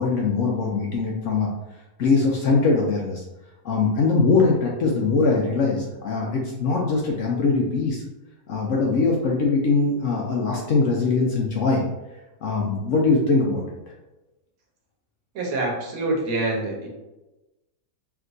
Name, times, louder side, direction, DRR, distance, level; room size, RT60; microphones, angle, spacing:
voice 1, 0.0-1.5 2.0-3.2 3.6-8.0 8.5-11.8 12.4-13.8, left 4 dB, 70° left, -1 dB, 0.8 m, -22 dB
voice 2, 15.3-16.9, right 2 dB, 65° right, -1 dB, 1.2 m, -26 dB
3.4 x 2.9 x 2.5 m, 1.0 s
omnidirectional pair, 1.7 m